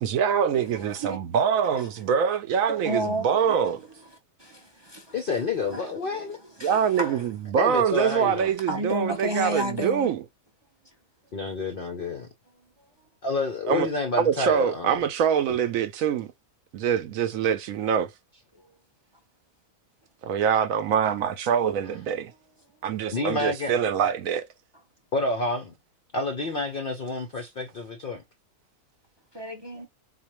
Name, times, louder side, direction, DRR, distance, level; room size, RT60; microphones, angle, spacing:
voice 1, 0.0-3.8 6.6-10.2 13.7-13.9 14.2-16.3 16.7-18.1 20.2-22.3 22.8-24.5, right 7 dB, 70° right, 0.9 m, -24 dB
voice 2, 0.5-1.2 2.7-3.4 4.4-5.1 5.7-7.2 8.2-8.4 8.7-10.2 18.6-18.8 29.3-29.9, right 1 dB, 35° right, 0.4 m, -32 dB
voice 3, 5.1-6.4 7.6-8.5 11.3-12.2 13.2-15.1 15.5-15.6 23.1-23.7 25.1-25.7 26.1-28.2, left 3 dB, 60° left, 0.5 m, -29 dB
4.2 x 2.3 x 2.9 m
omnidirectional pair, 1.6 m